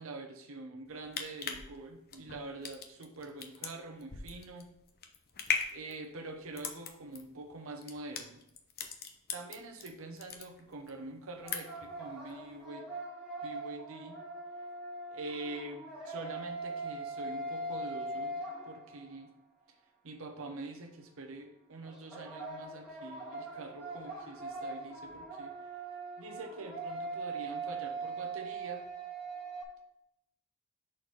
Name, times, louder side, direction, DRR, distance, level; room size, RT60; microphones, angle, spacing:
voice 1, 0.0-4.7 5.7-8.4 9.3-12.9 13.4-14.1 15.1-19.3 20.0-25.5 26.2-28.8, right 2 dB, 70° right, 2 dB, 0.9 m, -45 dB
sound 1, 0.9-9.9 10.2-10.9 11.2-11.9 12.3-12.4, left 6 dB, 45° left, 0.7 m, -39 dB
sound 2, 11.4-19.3 21.8-29.6, right 3 dB, 5° right, 1.8 m, -41 dB
6.3 x 4.2 x 4.7 m, 0.79 s
head